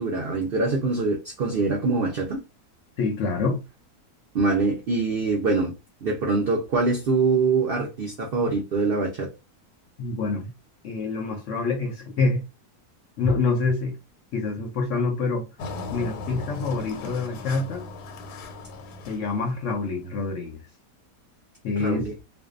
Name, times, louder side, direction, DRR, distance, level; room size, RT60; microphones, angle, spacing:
voice 1, 0.0-2.4 4.3-5.7 6.0-9.3 21.8-22.1, right 3 dB, 75° right, 0.5 m, -24 dB
voice 2, 3.0-3.6 10.0-10.5 10.8-12.4 13.2-14.0 14.3-15.5 15.9-17.8 19.1-20.6 21.6-22.1, left 3 dB, 65° left, 0.8 m, -26 dB
Engine, 15.6-20.1, left 3 dB, 85° left, 1.2 m, -38 dB
2.5 x 2.2 x 2.4 m
omnidirectional pair, 1.7 m